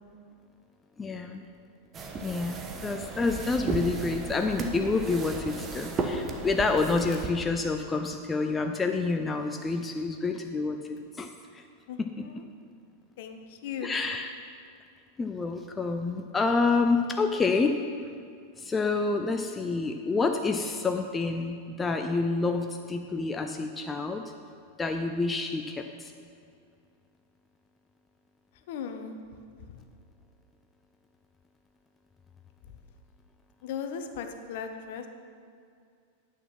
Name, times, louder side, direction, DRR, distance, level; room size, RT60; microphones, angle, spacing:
voice 1, 1.0-1.4 2.2-11.6 12.0-12.1 13.8-14.3 15.2-17.8 18.6-24.3 24.8-26.1, left 3 dB, 15° left, 5 dB, 0.6 m, -28 dB
sound 1, 1.9-7.3, right 2 dB, 25° right, 1.2 m, -34 dB
voice 2, 11.9-12.4 13.2-14.0 28.7-29.2 33.6-35.1, left 7 dB, 50° left, 6 dB, 0.9 m, -37 dB
10.0 x 8.4 x 5.9 m, 2.3 s
figure-of-eight pair, 90°, 0 cm